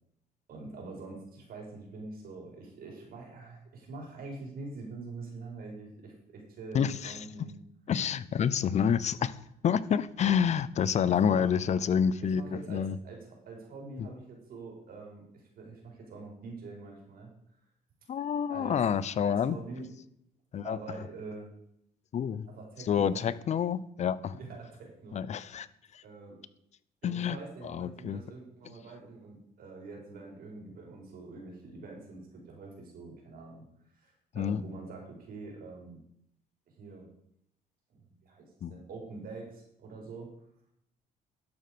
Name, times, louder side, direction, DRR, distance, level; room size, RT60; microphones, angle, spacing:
voice 1, 0.5-7.5 11.1-11.5 12.2-17.3 18.5-18.8 19.2-19.9 20.6-21.5 22.5-23.3 24.4-25.4 26.0-26.4 27.0-33.6 33.9-36.0 36.8-37.1 38.0-40.3, right 3 dB, 60° right, 0 dB, 4.7 m, -45 dB
voice 2, 6.7-7.5 7.9-9.4 9.6-12.4 12.7-13.0 14.0-14.1 18.1-19.6 20.5-20.8 22.1-22.5 22.9-24.3 25.1-25.7 25.9-26.0 27.0-27.4 27.6-28.2 34.4-34.6 38.6-38.8, left 8 dB, 40° left, 17 dB, 0.6 m, -28 dB
11.5 x 7.7 x 5.1 m, 0.75 s
cardioid pair, 110°, 17 cm